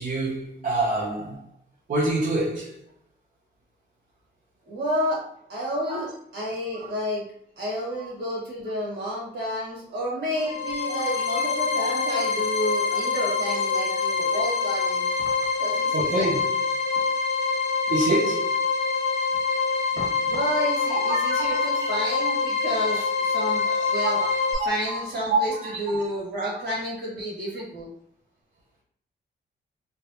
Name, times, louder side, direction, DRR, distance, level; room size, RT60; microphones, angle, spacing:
voice 1, 0.0-1.4 1.9-2.8 5.9-6.1 6.7-6.9 8.0-8.1 11.8-11.9 13.5-13.6 15.9-16.5 17.9-18.6 20.8-21.7 22.9-23.1 23.6-26.1, right 2 dB, 45° right, -5 dB, 0.6 m, -27 dB
voice 2, 4.7-5.2 5.5-7.2 7.6-15.0 15.6-16.4 19.9-23.6 23.9-24.2 24.6-25.5 25.8-27.9, equal, 60° right, -4 dB, 1.4 m, -30 dB
sound 1, 10.4-24.5, left 4 dB, 35° left, 0.4 m, -25 dB
3.2 x 2.3 x 2.8 m, 0.64 s
wide cardioid pair, 130°, 19 cm